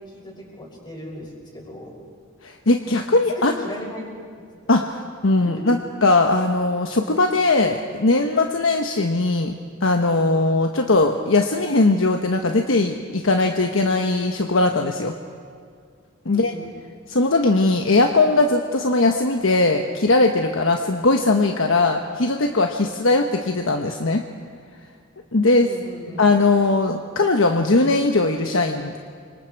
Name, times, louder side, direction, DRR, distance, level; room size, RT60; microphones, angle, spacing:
voice 1, 0.1-2.0 2.8-4.1 5.4-5.5 16.3-16.7 25.6-26.2, equal, 25° left, -2 dB, 6.3 m, -37 dB
voice 2, 2.4-3.5 4.7-9.5 9.8-15.1 16.2-16.5 17.1-24.2 25.3-25.7 26.2-29.0, left 2 dB, 70° left, 4 dB, 1.1 m, -19 dB
29.5 x 25.5 x 4.7 m, 2.2 s
head